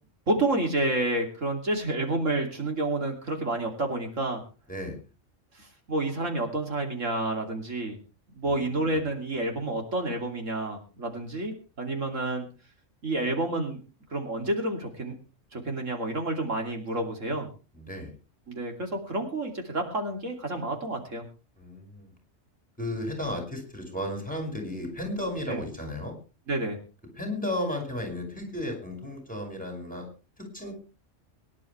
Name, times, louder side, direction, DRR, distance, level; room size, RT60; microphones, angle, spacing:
voice 1, 0.3-4.4 5.5-8.0 8.3-12.5 13.0-13.8 14.1-15.2 15.5-17.5 18.5-21.3 25.5-25.6 26.5-26.8, right 2 dB, 80° right, 3 dB, 3.2 m, -29 dB
voice 2, 8.4-8.9 17.8-18.1 21.6-22.1 22.8-26.1 27.2-30.1 30.5-30.7, left 1 dB, 5° left, 2 dB, 5.4 m, -34 dB
23.5 x 11.0 x 3.3 m, 0.33 s
omnidirectional pair, 1.3 m